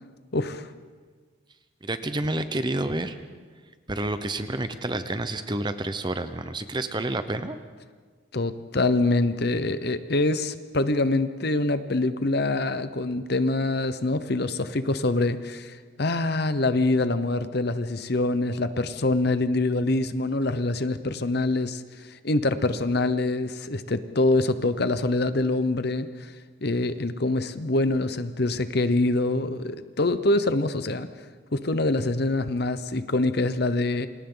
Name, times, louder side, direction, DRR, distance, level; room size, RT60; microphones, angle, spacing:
voice 1, 0.3-0.7 8.3-26.3 26.6-31.1 31.5-34.1, left 2 dB, 50° left, 11 dB, 0.9 m, -25 dB
voice 2, 1.8-3.2 3.9-7.6, right 2 dB, 20° right, 10 dB, 0.8 m, -29 dB
28.5 x 26.0 x 3.9 m, 1.5 s
head